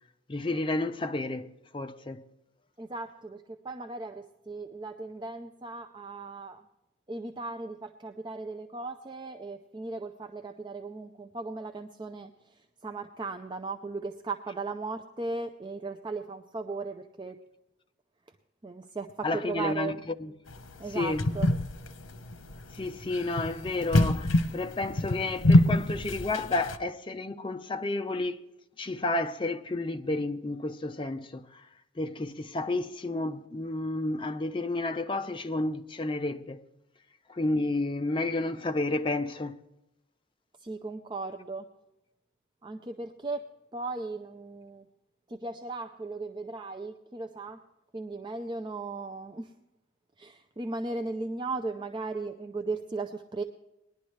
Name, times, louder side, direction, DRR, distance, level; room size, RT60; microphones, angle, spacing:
voice 1, 0.3-2.2 19.2-19.9 20.2-20.3 20.9-21.3 22.7-28.4 28.8-31.6 32.0-36.6 37.3-39.6, left 2 dB, 25° left, 0.5 m, -31 dB
voice 2, 2.8-6.6 7.1-17.4 18.6-20.0 20.8-21.5 40.6-41.7 42.6-44.9 45.3-47.6 47.9-49.5 50.2-53.4, right 3 dB, 25° right, 0.5 m, -37 dB
sound 1, 20.5-26.8, left 1 dB, 85° left, 0.9 m, -25 dB
19.5 x 11.0 x 3.2 m
head